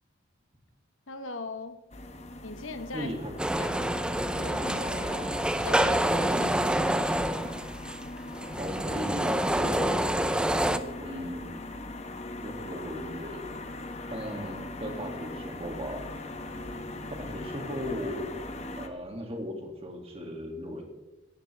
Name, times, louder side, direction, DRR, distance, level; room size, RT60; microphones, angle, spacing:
voice 1, 1.1-1.8 2.4-3.1 3.6-4.0 4.3-7.5, left 3 dB, 70° left, 1.1 m, -40 dB
sound 1, 1.9-18.9, left 2 dB, 30° left, 1.1 m, -40 dB
voice 2, 2.9-3.3 8.6-11.5 12.4-13.5 14.1-16.1 17.2-18.3 18.8-20.8, equal, 30° right, 2.4 m, -37 dB
sound 2, 3.4-10.8, right 1 dB, 5° right, 0.5 m, -27 dB
17.5 x 14.5 x 3.4 m
head